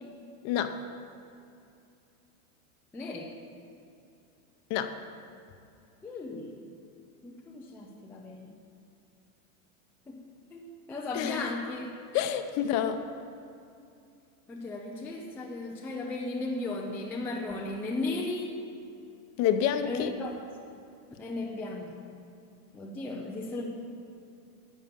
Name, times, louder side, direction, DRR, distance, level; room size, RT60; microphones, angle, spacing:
voice 1, 0.4-0.8 4.7-4.9 11.1-11.5 12.1-13.1 19.4-20.1, left 9 dB, 35° left, 9 dB, 0.7 m, -28 dB
voice 2, 2.9-3.3 6.0-6.5 7.2-8.5 10.1-10.2 10.5-11.9 14.5-18.6 19.8-20.3 21.2-21.9 22.7-23.6, left 2 dB, 5° left, -1 dB, 0.3 m, -36 dB
11.0 x 7.2 x 8.8 m, 2.6 s
supercardioid pair, 155°, 44 cm